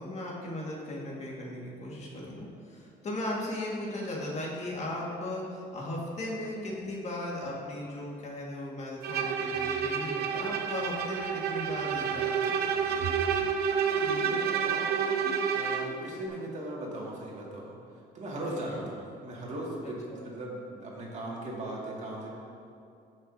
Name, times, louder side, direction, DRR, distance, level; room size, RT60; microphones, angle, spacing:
voice 1, 0.0-12.7 18.4-18.8 19.8-20.2, left 1 dB, 40° left, -3 dB, 1.8 m, -37 dB
Bowed string instrument, 9.0-16.0, right 7 dB, 70° right, 0.7 m, -29 dB
voice 2, 14.0-15.2 15.5-17.7 18.1-20.0 20.2-22.3, right 1 dB, 45° right, -4 dB, 2.1 m, -38 dB
14.5 x 6.2 x 2.7 m, 2.5 s
cardioid pair, 110°, 17 cm